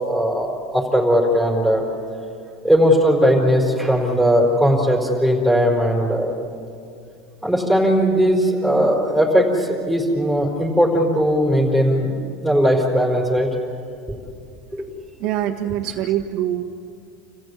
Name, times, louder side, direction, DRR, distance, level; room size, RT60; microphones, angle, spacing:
voice 1, 0.0-1.8 2.6-6.3 7.4-12.2 12.4-13.5 14.7-14.9, equal, 5° left, -3 dB, 4.7 m, -18 dB
voice 2, 15.2-16.6, right 12 dB, 60° right, 1 dB, 1.5 m, -24 dB
28.0 x 15.0 x 9.7 m, 2.5 s
supercardioid pair, 120°, 0 cm